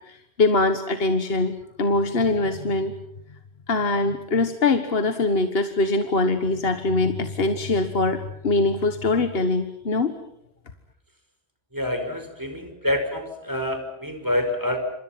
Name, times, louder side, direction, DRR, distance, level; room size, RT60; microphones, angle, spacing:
voice 1, 0.1-1.5 1.8-2.9 3.7-10.2, left 3 dB, 70° left, 8 dB, 1.7 m, -23 dB
voice 2, 11.7-14.8, left 1 dB, 20° right, 6 dB, 5.2 m, -27 dB
29.0 x 27.0 x 5.9 m, 0.77 s
omnidirectional pair, 1.1 m